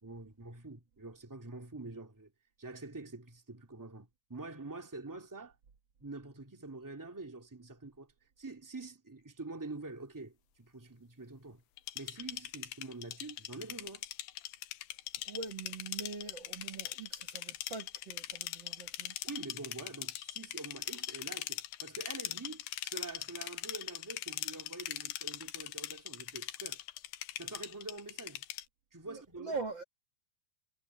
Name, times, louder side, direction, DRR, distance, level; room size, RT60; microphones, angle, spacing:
voice 1, 0.0-2.3 2.6-5.5 6.0-8.1 8.4-11.6 11.9-14.1 19.2-26.8 27.4-28.4 28.9-29.6, right 3 dB, 10° right, 1.3 m, -46 dB
sound 1, 11.8-28.6, left 14 dB, 80° left, 3.0 m, -41 dB
voice 2, 15.3-19.1 29.1-29.8, right 4 dB, 85° right, 1.0 m, -43 dB
omnidirectional pair, 4.7 m